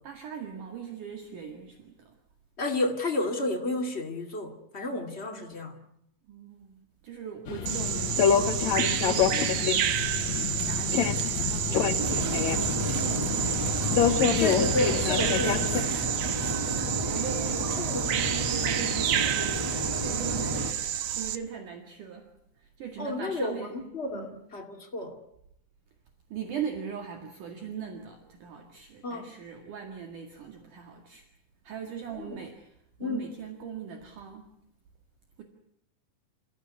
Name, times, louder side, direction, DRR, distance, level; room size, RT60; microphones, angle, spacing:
voice 1, 0.0-2.1 6.3-12.7 12.9-13.7 14.0-16.1 16.5-20.7 21.0-22.3 22.6-23.7 24.1-24.3 26.3-31.3 31.6-32.7 33.0-34.5, right 7 dB, 60° right, 4 dB, 3.3 m, -40 dB
voice 2, 2.6-5.8 14.4-16.0 17.8-18.1 23.0-25.2 29.0-29.3 32.1-32.5 33.0-33.3, left 2 dB, 20° left, 2 dB, 1.8 m, -31 dB
sound 1, 7.5-15.8, left 7 dB, 60° left, 2.1 m, -27 dB
Bird vocalization bird call bird song, 7.7-21.4, right 10 dB, 75° right, 1.6 m, -30 dB
sound 2, 12.0-20.7, right 1 dB, 20° right, 0.7 m, -32 dB
28.0 x 15.5 x 9.6 m, 0.79 s
omnidirectional pair, 4.5 m